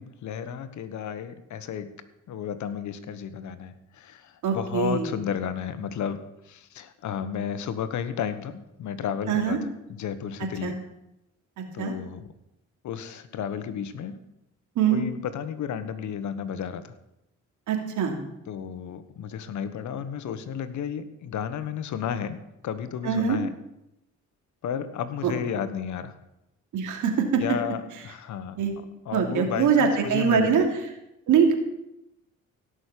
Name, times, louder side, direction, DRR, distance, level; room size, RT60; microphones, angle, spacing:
voice 1, 0.0-1.9 2.3-6.2 6.4-9.6 9.9-10.8 11.7-12.3 12.8-14.3 14.9-16.9 18.5-23.5 24.6-26.1 27.4-28.6 29.0-30.6, left 8 dB, 75° left, 12 dB, 1.4 m, -33 dB
voice 2, 4.4-5.0 9.3-9.6 10.6-10.7 11.6-11.9 14.8-15.0 17.7-18.1 23.0-23.4 25.2-25.3 26.7-27.4 28.6-28.7 29.1-30.6 31.3-31.5, right 7 dB, 80° right, 3 dB, 3.0 m, -23 dB
17.0 x 6.4 x 8.5 m, 0.88 s
cardioid pair, 90°, 30 cm